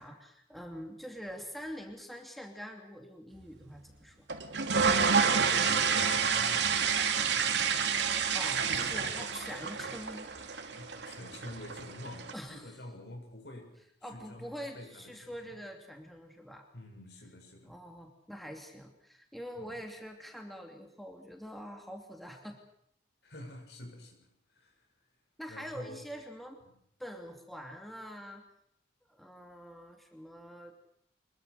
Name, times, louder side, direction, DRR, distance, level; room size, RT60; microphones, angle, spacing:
voice 1, 0.0-4.2 8.3-10.3 12.3-12.8 14.0-16.7 17.6-22.6 25.4-26.6 27.0-28.4 29.1-30.7, equal, ahead, 2 dB, 2.7 m, -45 dB
sound 1, 4.3-12.3, right 6 dB, 80° right, 2.7 m, -29 dB
voice 2, 5.4-7.8 10.8-13.7 14.0-15.6 16.7-17.7 19.6-19.8 23.2-24.8 25.5-26.0, left 1 dB, 75° left, 3 dB, 7.6 m, -48 dB
25.5 x 22.0 x 6.6 m, 0.70 s
head